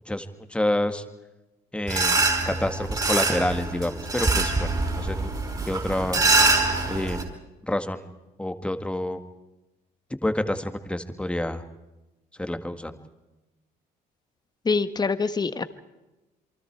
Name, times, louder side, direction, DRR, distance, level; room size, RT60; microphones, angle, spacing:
voice 1, 0.1-1.0 1.7-2.2 2.5-4.7 5.0-5.3 5.7-6.2 6.9-7.3 7.6-8.1 8.4-9.3 10.2-11.6 12.4-13.0, left 1 dB, 5° left, 8 dB, 1.8 m, -28 dB
sound 1, 1.9-7.2, right 3 dB, 25° right, 4.8 m, -24 dB
voice 2, 14.6-15.6, left 4 dB, 25° left, 12 dB, 1.4 m, -24 dB
28.0 x 23.5 x 4.7 m, 1.0 s
cardioid pair, 110°, 17 cm